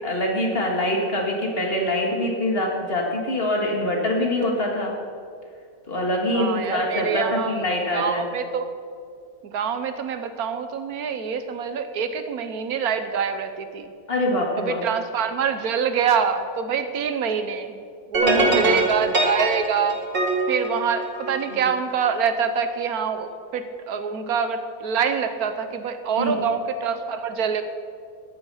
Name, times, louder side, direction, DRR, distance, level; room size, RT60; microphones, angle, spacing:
voice 1, 0.0-4.9 5.9-8.3 14.1-14.8 18.2-18.8 21.5-21.7 26.2-26.4, left 1 dB, 40° left, 0 dB, 2.2 m, -24 dB
voice 2, 6.3-7.6 7.9-8.7 9.5-13.9 14.6-17.8 18.1-20.0 20.5-27.6, right 6 dB, 85° right, 9 dB, 1.4 m, -25 dB
sound 1, 18.1-21.5, right 2 dB, 60° right, 2.6 m, -23 dB
14.0 x 10.5 x 5.6 m, 2.3 s
omnidirectional pair, 1.5 m